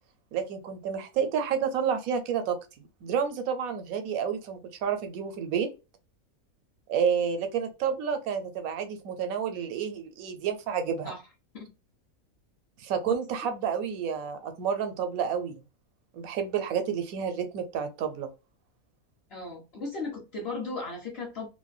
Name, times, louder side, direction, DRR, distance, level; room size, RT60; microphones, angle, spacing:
voice 1, 0.3-5.7 6.9-11.1 12.8-15.6 16.1-18.3, right 7 dB, 80° right, 1.0 m, -30 dB
voice 2, 19.3-21.5, left 3 dB, 50° left, 0.9 m, -36 dB
2.5 x 2.1 x 2.3 m
omnidirectional pair, 1.5 m